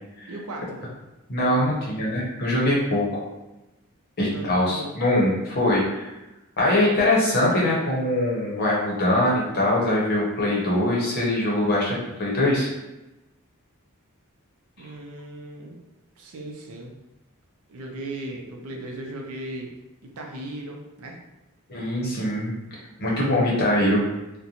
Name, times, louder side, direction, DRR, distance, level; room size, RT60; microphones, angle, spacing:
voice 1, 0.3-0.8 4.3-5.0 14.8-15.8 16.2-17.0 17.7-19.7 20.0-21.2, right 1 dB, 70° right, 1 dB, 0.5 m, -37 dB
voice 2, 1.3-3.2 4.2-6.1 6.6-12.7 21.7-22.5 23.0-24.0, left 1 dB, 45° left, -4 dB, 0.8 m, -22 dB
2.5 x 2.1 x 2.8 m, 1.0 s
head